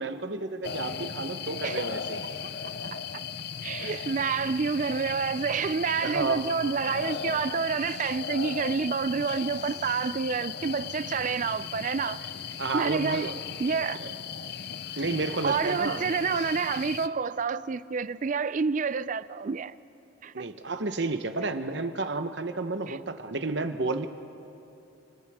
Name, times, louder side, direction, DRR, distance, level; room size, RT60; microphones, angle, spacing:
voice 1, 0.0-2.2 3.8-4.1 6.0-6.5 12.2-12.3 12.6-13.4 14.0-14.1 15.0-16.1 20.3-24.1, right 3 dB, 60° right, 1.1 m, -31 dB
sound 1, 0.6-17.1, left 7 dB, 55° left, 0.7 m, -37 dB
voice 2, 2.9-3.2 3.6-12.2 12.7-13.3 13.6-14.0 15.4-19.8 20.2-20.4 22.9-23.0, right 5 dB, 40° right, 0.4 m, -28 dB
30.0 x 29.5 x 3.6 m
head